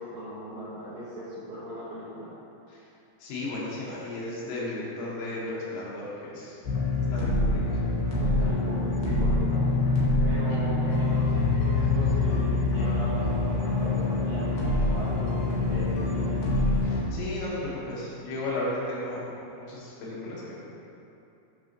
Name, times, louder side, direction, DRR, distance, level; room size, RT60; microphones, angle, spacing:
voice 1, 0.0-2.3 8.2-9.7 10.2-16.4, right 1 dB, 75° right, -9 dB, 2.1 m, -38 dB
voice 2, 3.2-6.6 7.1-7.6 10.5-10.6 16.8-19.3 19.5-20.6, left 2 dB, 80° left, -6 dB, 3.8 m, -34 dB
sound 1, 6.6-17.0, left 2 dB, 65° left, 2.7 m, -25 dB
9.2 x 6.3 x 3.0 m, 2.8 s
omnidirectional pair, 5.2 m